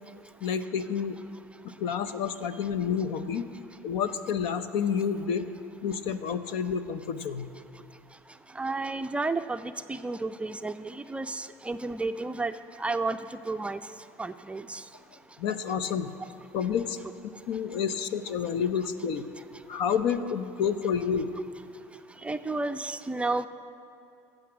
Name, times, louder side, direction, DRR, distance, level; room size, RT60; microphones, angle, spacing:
voice 1, 0.4-1.2 1.8-3.5 3.8-5.5 5.8-7.5 15.4-16.2 16.5-17.0 17.5-19.3 19.7-21.3, left 7 dB, 65° left, 11 dB, 0.7 m, -29 dB
voice 2, 8.6-12.5 12.8-13.2 13.5-13.8 14.2-14.8 21.3-21.4 22.2-23.5, right 3 dB, 10° right, 9 dB, 0.4 m, -31 dB
14.5 x 7.8 x 5.9 m, 2.6 s
hypercardioid pair, 85°, 9 cm